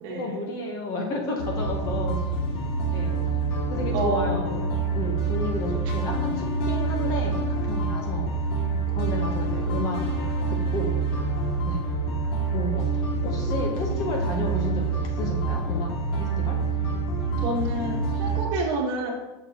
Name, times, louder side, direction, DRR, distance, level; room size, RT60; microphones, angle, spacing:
voice 1, 0.1-2.2 2.9-3.2 3.7-4.6 4.9-8.3 8.9-10.0 10.5-11.0 11.6-11.9 12.5-16.6, left 2 dB, 25° left, 1 dB, 1.0 m, -32 dB
sound 1, 1.4-18.4, right 3 dB, 65° left, 2.2 m, -27 dB
voice 2, 3.9-4.8 5.9-6.4 17.4-19.1, right 3 dB, 35° right, 0 dB, 1.5 m, -29 dB
10.5 x 6.5 x 2.9 m, 1.1 s
supercardioid pair, 175°, 14 cm